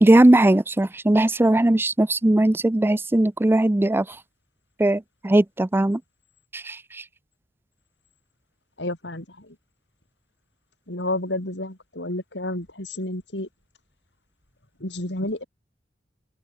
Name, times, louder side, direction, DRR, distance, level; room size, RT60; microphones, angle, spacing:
voice 1, 0.0-4.1 4.8-6.0 6.5-6.8, right 1 dB, 15° right, 0.4 m, -19 dB
voice 2, 8.8-9.6 10.9-13.5 14.8-15.4, left 1 dB, 80° left, 5.8 m, -30 dB
open air
head